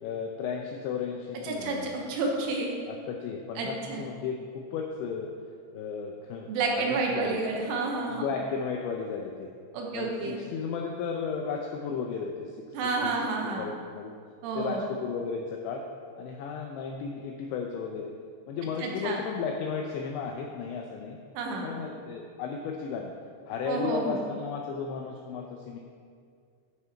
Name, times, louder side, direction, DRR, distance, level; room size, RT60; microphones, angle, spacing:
voice 1, 0.0-2.0 2.9-5.3 5.7-7.4 8.1-9.5 9.9-13.2 13.6-14.1 14.6-15.8 16.2-18.1 18.5-21.2 21.6-23.1 23.5-25.8, left 5 dB, 85° left, 2 dB, 2.6 m, -34 dB
voice 2, 1.4-2.7 3.6-4.0 6.5-8.3 9.7-10.4 12.7-13.6 14.4-14.8 18.8-19.2 21.3-21.7 23.7-24.2, right 3 dB, 80° right, 0 dB, 3.4 m, -30 dB
13.5 x 6.1 x 4.4 m, 2.2 s
omnidirectional pair, 5.9 m